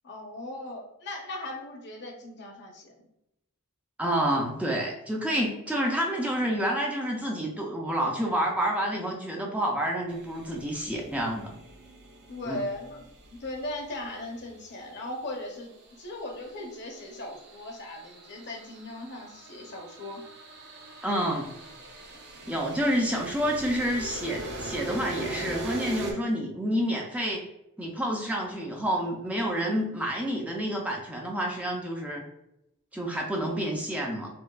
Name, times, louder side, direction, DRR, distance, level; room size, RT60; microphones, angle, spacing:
voice 1, 0.0-3.1 12.3-15.7 16.0-20.2, left 1 dB, 50° left, 2 dB, 0.7 m, -38 dB
voice 2, 4.0-11.5 12.5-12.6 21.0-21.5 22.5-27.4 27.8-32.2 32.9-34.3, equal, 5° right, -1 dB, 0.4 m, -29 dB
sound 1, 10.1-14.4 16.0-26.1, right 1 dB, 50° right, 0.6 m, -41 dB
4.4 x 2.2 x 2.3 m, 0.84 s
head